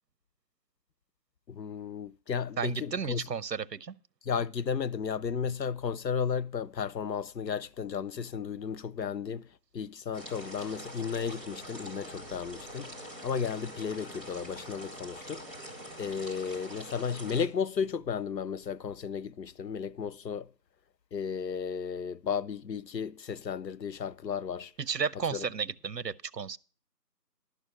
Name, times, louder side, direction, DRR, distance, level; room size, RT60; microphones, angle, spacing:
voice 1, 1.5-3.2 4.3-9.5 9.7-20.5 21.1-24.7 25.3-25.5, left 6 dB, 85° left, 0.6 m, -34 dB
voice 2, 2.6-3.9 24.8-26.6, right 6 dB, 80° right, 0.7 m, -33 dB
sound 1, 10.1-17.5, equal, 30° left, 2.7 m, -44 dB
11.5 x 6.6 x 6.2 m
figure-of-eight pair, 180°, 49 cm